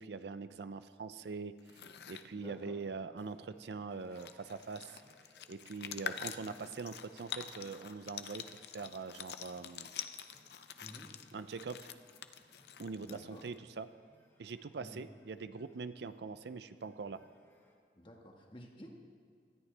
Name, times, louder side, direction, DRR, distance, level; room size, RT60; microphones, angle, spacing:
voice 1, 0.0-5.0 5.5-8.5 8.7-9.9 11.3-12.0 12.8-13.9 14.4-17.2, right 4 dB, 70° right, 12 dB, 0.5 m, -43 dB
sound 1, 1.6-2.3 3.7-3.8 4.0-13.6, left 8 dB, 65° left, 0.6 m, -46 dB
sound 2, 2.1-17.7, left 1 dB, 15° left, 1.6 m, -68 dB
voice 2, 2.3-2.7 10.8-11.1 13.0-13.4 14.8-15.2 18.0-18.9, equal, 30° left, 1 dB, 1.5 m, -52 dB
19.0 x 13.5 x 3.4 m, 2.1 s
head